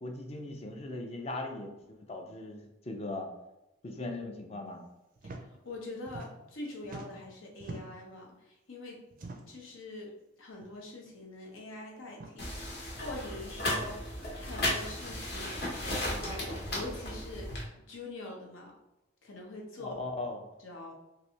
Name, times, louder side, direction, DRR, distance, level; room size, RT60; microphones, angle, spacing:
voice 1, 0.0-3.3 3.8-4.8 19.8-20.4, left 2 dB, 30° left, 3 dB, 0.4 m, -39 dB
sound 1, 5.2-5.4 5.7-6.6 6.8-8.1 9.1-9.7 10.6-10.8 11.1-11.2 12.1-12.4 13.5-13.6 14.8-15.1 16.1-16.4, right 2 dB, 45° right, 0.4 m, -46 dB
voice 2, 5.6-9.0 9.5-14.0 14.4-15.7 16.1-18.7 19.2-20.0 20.6-20.9, left 2 dB, 80° left, -1 dB, 0.8 m, -44 dB
sound 2, 12.4-17.6, left 1 dB, 50° left, 0.9 m, -35 dB
3.2 x 2.6 x 2.8 m, 0.93 s
head